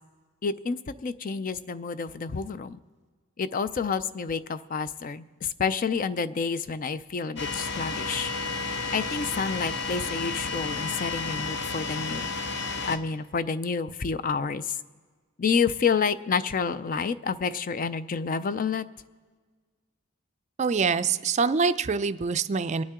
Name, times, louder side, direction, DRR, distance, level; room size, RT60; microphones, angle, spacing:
voice 1, 0.4-2.8 3.4-8.3 8.9-12.2 12.9-14.8 15.4-18.8, left 5 dB, 40° left, 14 dB, 0.4 m, -29 dB
sound 1, 7.4-13.0, left 4 dB, 55° left, 1.0 m, -32 dB
voice 2, 20.6-22.8, right 5 dB, 35° right, 11 dB, 0.4 m, -25 dB
24.5 x 9.4 x 3.7 m, 1.5 s
head